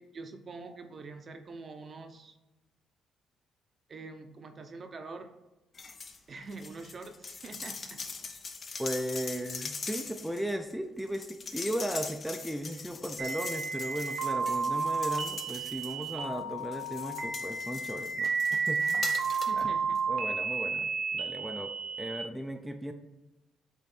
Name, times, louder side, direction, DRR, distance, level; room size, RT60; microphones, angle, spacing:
voice 1, 0.0-2.3 3.9-5.3 6.3-8.0 19.5-20.0, right 3 dB, 45° right, 7 dB, 0.7 m, -45 dB
sound 1, 5.7-6.2 6.5-16.3 16.7-19.6 20.0-20.1, left 4 dB, 45° left, 0.7 m, -42 dB
voice 2, 8.8-19.1 19.5-19.8 20.1-21.7 22.0-22.9, right 1 dB, 5° right, 4 dB, 0.5 m, -36 dB
sound 2, 13.2-22.2, right 4 dB, 85° right, 0.9 m, -32 dB
8.1 x 3.1 x 4.3 m, 1.0 s
cardioid pair, 90°, 0 cm